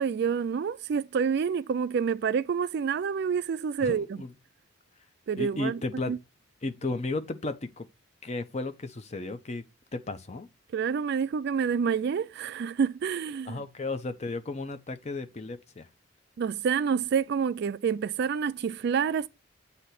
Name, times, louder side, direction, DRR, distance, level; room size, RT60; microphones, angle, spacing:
voice 1, 0.0-4.2 5.3-5.8 6.1-6.2 10.7-13.6 16.4-19.3, right 6 dB, 55° right, 0.3 m, -28 dB
voice 2, 3.8-4.3 5.4-6.1 6.6-7.9 8.2-9.6 9.9-10.5 13.5-15.9, left 2 dB, 35° left, 0.6 m, -34 dB
8.2 x 2.8 x 5.8 m
head